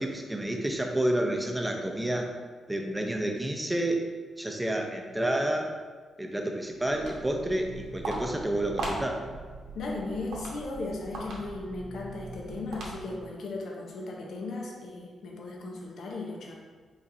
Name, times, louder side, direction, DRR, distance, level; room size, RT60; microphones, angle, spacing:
voice 1, 0.0-2.3 2.7-4.0 4.4-5.7 6.2-9.2, right 1 dB, 10° right, 2 dB, 0.5 m, -29 dB
Walk footsteps, 6.8-13.3, right 2 dB, 85° right, 0.8 m, -39 dB
voice 2, 9.7-16.6, left 3 dB, 75° left, -1 dB, 0.6 m, -36 dB
4.1 x 2.4 x 4.1 m, 1.5 s
cardioid pair, 95°, 0 cm